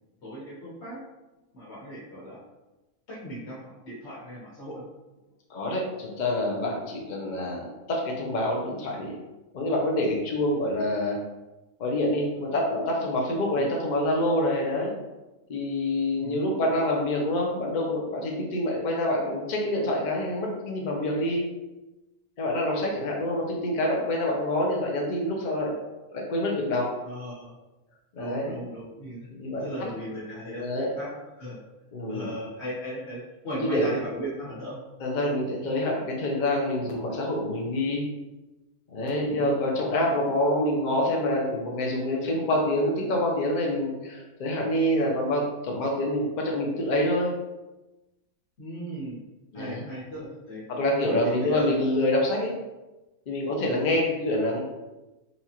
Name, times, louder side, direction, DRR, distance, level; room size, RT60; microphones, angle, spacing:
voice 1, 0.2-1.0 1.5-2.4 3.1-4.8 13.5-13.7 16.2-16.5 27.0-27.6 28.1-29.2 29.6-31.1 31.4-31.6 32.1-34.8 39.2-39.6 48.6-49.2 49.5-50.6 51.0-51.8 53.7-54.0, equal, 45° left, -6 dB, 1.4 m, -37 dB
voice 2, 5.5-9.1 9.5-11.2 11.8-14.9 15.5-21.5 22.4-25.8 26.1-26.9 28.1-28.6 29.4-29.7 30.6-30.9 31.9-32.3 33.6-33.9 35.0-38.1 38.9-47.3 49.5-49.8 50.7-52.5 53.3-54.6, left 1 dB, 65° left, -1 dB, 0.4 m, -26 dB
4.2 x 2.5 x 2.8 m, 1.1 s
omnidirectional pair, 1.6 m